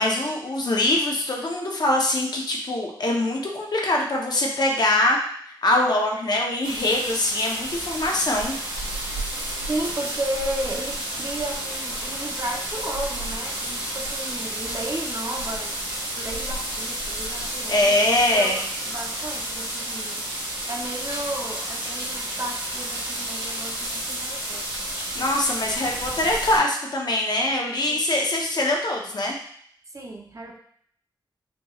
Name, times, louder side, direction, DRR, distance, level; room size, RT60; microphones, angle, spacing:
voice 1, 0.0-5.2 5.5-8.5 17.7-18.6 20.6-20.7 25.1-29.4, left 1 dB, 55° left, 0 dB, 0.8 m, -23 dB
sound 1, 6.6-26.6, right 1 dB, 70° right, 1.7 m, -31 dB
voice 2, 9.7-24.9 27.9-28.0 29.9-30.6, right 1 dB, 40° right, 1 dB, 0.6 m, -34 dB
5.2 x 3.1 x 2.4 m, 0.62 s
wide cardioid pair, 100°, 8 cm